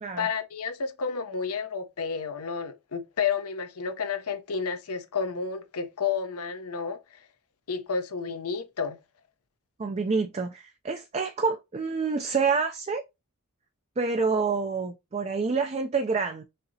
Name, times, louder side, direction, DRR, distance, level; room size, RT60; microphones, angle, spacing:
voice 1, 0.2-7.0 7.7-9.0, left 6 dB, 80° left, 0.7 m, -31 dB
voice 2, 9.8-13.0 14.0-16.4, right 4 dB, 30° right, 0.4 m, -27 dB
6.5 x 2.8 x 2.7 m
head